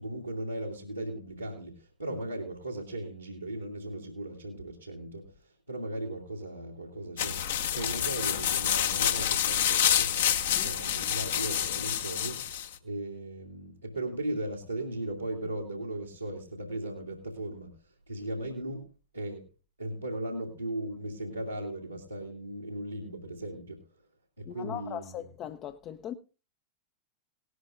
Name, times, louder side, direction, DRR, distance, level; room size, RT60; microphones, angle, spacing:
voice 1, 0.0-7.4 7.7-10.1 10.6-12.4 12.8-18.9 19.1-19.5 19.8-23.8 24.4-25.2, right 1 dB, 90° right, 2.5 m, -37 dB
sound 1, 7.2-12.7, left 10 dB, 60° left, 1.4 m, -28 dB
voice 2, 24.5-26.1, left 10 dB, 35° left, 0.7 m, -39 dB
18.5 x 13.0 x 2.5 m
figure-of-eight pair, 90°, 0 cm